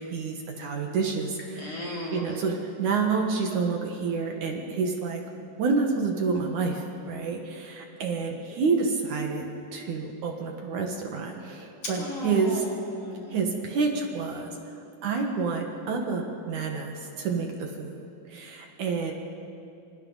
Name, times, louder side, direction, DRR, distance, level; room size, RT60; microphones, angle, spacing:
voice 1, 0.1-5.2 5.6-9.5 9.7-12.7 13.3-14.6 15.0-18.0 18.3-19.1, right 4 dB, 65° right, 2 dB, 2.9 m, -28 dB
voice 2, 1.6-2.2 12.0-12.6 13.0-13.4, left 2 dB, 45° left, -4 dB, 4.8 m, -36 dB
27.5 x 26.5 x 4.1 m, 2.6 s
omnidirectional pair, 4.0 m